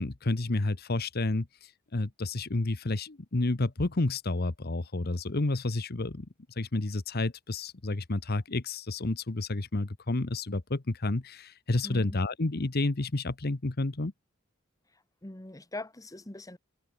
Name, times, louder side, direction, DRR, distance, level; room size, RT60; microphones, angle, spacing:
voice 1, 0.0-1.5 1.9-6.3 6.6-14.1, left 2 dB, 50° left, 1.1 m, -30 dB
voice 2, 11.8-12.2 15.2-16.6, left 2 dB, 15° left, 1.3 m, -41 dB
head